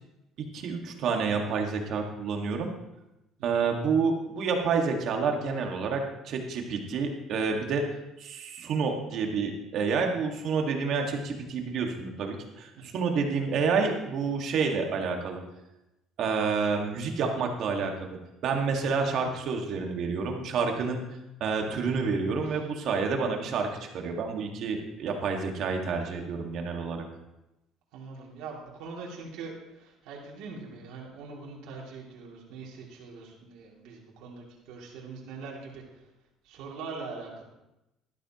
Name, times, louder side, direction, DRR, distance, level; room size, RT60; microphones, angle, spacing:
voice 1, 0.5-2.7 3.4-7.8 8.2-15.4 16.2-21.0 21.4-27.1, right 5 dB, 60° right, 2 dB, 1.9 m, -29 dB
voice 2, 27.9-36.0 36.4-37.4, right 4 dB, 75° right, -4 dB, 2.8 m, -42 dB
12.5 x 12.0 x 3.0 m, 0.93 s
cardioid pair, 120°, 0 cm